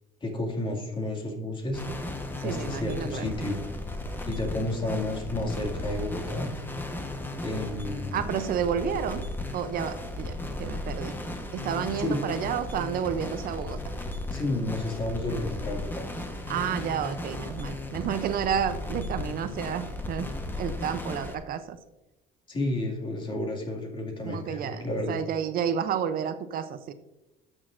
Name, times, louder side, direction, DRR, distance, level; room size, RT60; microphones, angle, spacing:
voice 1, 0.2-1.8 2.4-3.6 4.3-6.7 7.4-8.2 12.0-12.2 14.3-16.0 22.5-25.2, left 1 dB, 25° left, 1 dB, 2.1 m, -31 dB
sound 1, 1.7-21.3, left 1 dB, 10° left, 1.0 m, -35 dB
voice 2, 2.4-3.3 8.1-9.2 9.5-11.2 11.5-13.9 16.5-20.3 20.6-21.8 24.2-26.9, right 8 dB, 55° right, 11 dB, 0.5 m, -31 dB
12.0 x 6.3 x 2.5 m, 1.0 s
cardioid pair, 115°, 18 cm